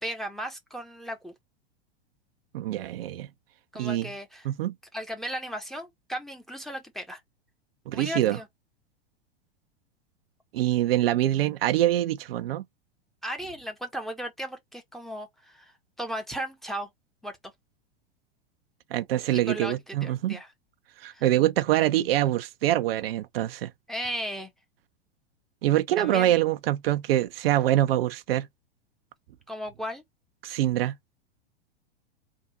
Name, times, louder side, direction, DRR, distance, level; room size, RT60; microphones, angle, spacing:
voice 1, 0.0-1.3 3.7-4.5 4.9-7.2 7.9-8.5 13.2-15.7 16.0-16.9 17.2-17.3 19.3-20.5 21.1-21.2 23.9-24.5 26.0-26.3 29.5-30.0, equal, ahead, 1.1 m, -35 dB
voice 2, 2.5-3.3 3.8-4.1 4.4-4.7 7.9-8.4 10.5-12.6 18.9-20.4 21.0-23.7 25.6-28.5 30.4-30.9, right 13 dB, 65° right, 0.6 m, -25 dB
3.5 x 2.5 x 4.0 m
hypercardioid pair, 100°, 32 cm